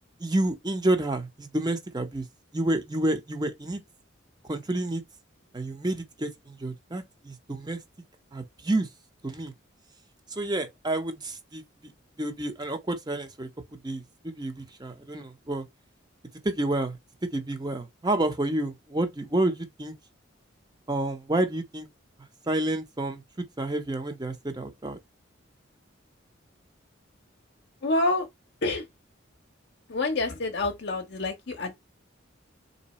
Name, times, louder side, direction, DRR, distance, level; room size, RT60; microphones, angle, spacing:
voice 1, 0.2-2.3 2.5-3.8 4.5-5.0 5.5-7.8 8.3-8.9 9.2-9.5 10.3-11.9 12.2-15.6 16.4-19.9 20.9-21.9 22.5-25.0, right 1 dB, 20° right, 0.7 m, -29 dB
voice 2, 27.8-28.3 28.6-28.9 29.9-31.7, left 2 dB, 55° left, 0.7 m, -27 dB
3.9 x 2.8 x 4.0 m
head